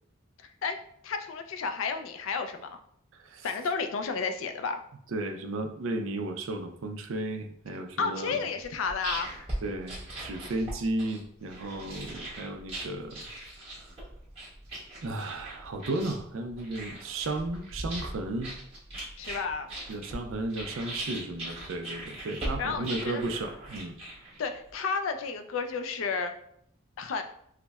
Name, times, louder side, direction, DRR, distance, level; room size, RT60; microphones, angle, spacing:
voice 1, 1.0-2.8 3.4-4.8 8.0-9.3 19.2-19.7 22.6-23.2 24.4-26.3 27.0-27.2, left 5 dB, 70° left, 7 dB, 0.4 m, -32 dB
voice 2, 5.1-8.4 9.6-13.3 15.0-18.5 19.9-23.9, right 2 dB, 70° right, 6 dB, 0.4 m, -34 dB
sound 1, 8.6-24.7, right 1 dB, 30° right, 1.2 m, -40 dB
5.6 x 2.1 x 2.3 m, 0.69 s
head